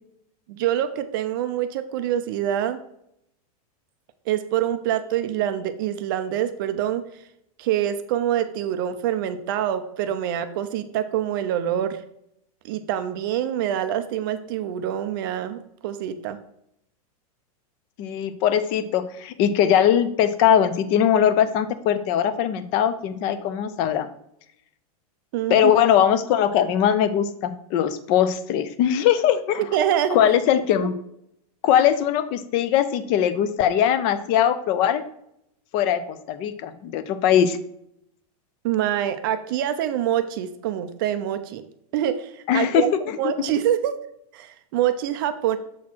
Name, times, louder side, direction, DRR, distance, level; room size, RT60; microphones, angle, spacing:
voice 1, 0.5-2.8 4.3-7.0 7.6-12.0 12.6-16.4 25.3-25.7 29.7-30.2 30.8-30.9 38.6-41.6 41.9-42.9 43.2-44.0 44.3-45.6, right 11 dB, 35° right, 10 dB, 0.4 m, -25 dB
voice 2, 18.0-24.1 25.5-29.6 30.1-30.9 31.6-35.0 35.7-37.6 42.5-42.9 43.2-43.3, left 9 dB, 25° left, 13 dB, 0.4 m, -21 dB
7.2 x 4.3 x 4.3 m, 0.76 s
supercardioid pair, 170°, 19 cm